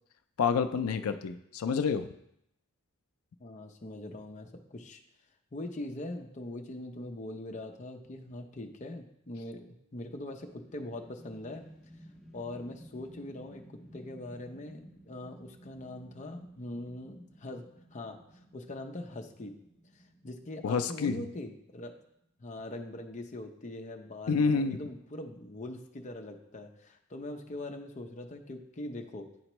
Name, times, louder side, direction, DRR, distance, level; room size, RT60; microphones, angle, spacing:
voice 1, 0.4-2.1 20.6-21.2 24.3-24.8, left 5 dB, 90° left, 9 dB, 0.4 m, -28 dB
voice 2, 3.4-5.0 5.5-11.7 12.3-13.6 13.9-17.7 17.9-18.2 18.5-19.5 20.2-21.9 22.4-29.3, left 1 dB, 35° left, 3 dB, 0.6 m, -42 dB
sound 1, 10.1-22.3, right 1 dB, 5° right, 1.4 m, -56 dB
10.0 x 4.3 x 3.0 m, 0.76 s
head